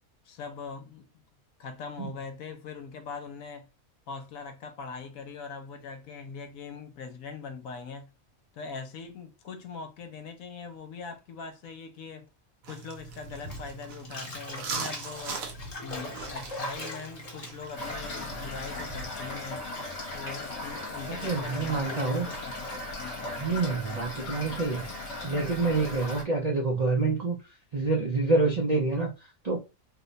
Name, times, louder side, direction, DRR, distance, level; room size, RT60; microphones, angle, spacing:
voice 1, 0.2-1.2 1.6-3.7 4.1-8.1 8.5-12.3 12.7-15.5 15.8-19.6 20.1-23.5, left 5 dB, 75° left, 1.1 m, -42 dB
sound 1, 12.6-19.1, right 4 dB, 75° right, 1.1 m, -40 dB
Bathtub (filling or washing), 13.4-19.2 19.5-23.0, left 2 dB, 30° left, 0.8 m, -42 dB
Toilet flush / Fill (with liquid), 17.8-26.2, left 2 dB, 50° left, 1.2 m, -37 dB
voice 2, 21.0-22.3 23.4-24.8 25.2-27.4 27.7-29.6, right 3 dB, 55° right, 0.4 m, -27 dB
2.8 x 2.2 x 3.8 m
omnidirectional pair, 1.5 m